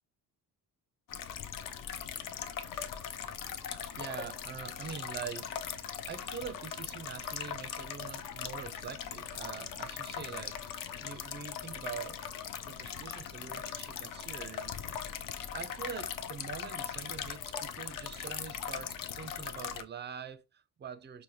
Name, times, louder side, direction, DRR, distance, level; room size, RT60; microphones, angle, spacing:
sound 1, 1.1-19.8, left 8 dB, 55° left, 0.5 m, -40 dB
voice 1, 3.7-5.6 6.1-12.2 12.6-15.2 15.5-21.2, right 7 dB, 30° right, 0.4 m, -44 dB
4.7 x 2.1 x 2.7 m
cardioid pair, 85°, 39 cm